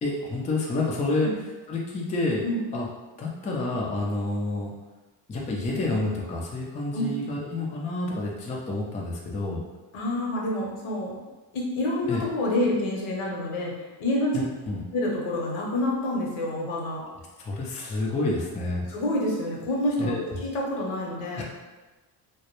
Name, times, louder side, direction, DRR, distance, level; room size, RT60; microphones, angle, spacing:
voice 1, 0.0-1.3 1.7-2.4 2.7-2.9 3.2-4.7 5.3-9.6 12.1-12.2 14.3-14.8 17.4-18.9 20.0-20.4 21.4-21.5, left 2 dB, 15° left, -3 dB, 0.3 m, -29 dB
voice 2, 9.9-11.2 11.5-13.7 14.0-14.4 14.9-17.0 18.9-20.1 20.4-21.4, left 1 dB, 70° left, -2 dB, 0.8 m, -27 dB
2.2 x 2.0 x 2.9 m, 1.2 s
supercardioid pair, 75°, 50 cm